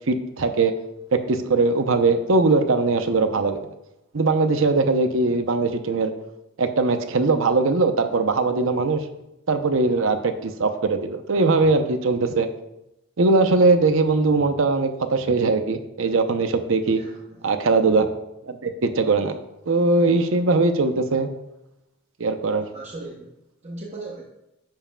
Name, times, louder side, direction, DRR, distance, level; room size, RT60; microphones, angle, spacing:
voice 1, 0.1-0.7 1.1-3.6 4.1-6.1 6.6-9.0 9.5-12.5 13.2-17.0 17.4-18.1 18.4-19.3 19.7-21.3 22.2-22.6, right 3 dB, 70° right, 8 dB, 0.7 m, -20 dB
voice 2, 16.9-17.5 22.5-23.3 23.6-24.2, right 2 dB, 30° right, -2 dB, 0.8 m, -38 dB
10.5 x 7.3 x 2.3 m, 0.89 s
head